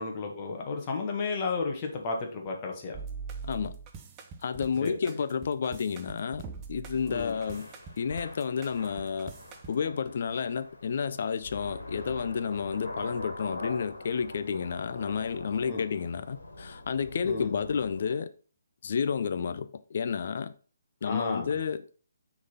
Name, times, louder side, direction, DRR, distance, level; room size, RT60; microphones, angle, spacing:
voice 1, 0.0-3.0 4.8-4.9 7.0-7.3 15.7-15.8 17.2-17.5 21.0-21.5, left 4 dB, 30° left, 1.6 m, -33 dB
sound 1, 2.9-9.8, right 5 dB, 20° right, 0.8 m, -43 dB
voice 2, 3.4-3.8 4.4-6.4 6.7-7.7 8.0-9.3 9.7-18.3 18.8-20.5 21.0-21.8, left 6 dB, 50° left, 0.6 m, -31 dB
Thunder / Rain, 7.3-18.1, left 2 dB, 75° left, 2.1 m, -43 dB
6.2 x 4.0 x 5.6 m
figure-of-eight pair, 140°, 0 cm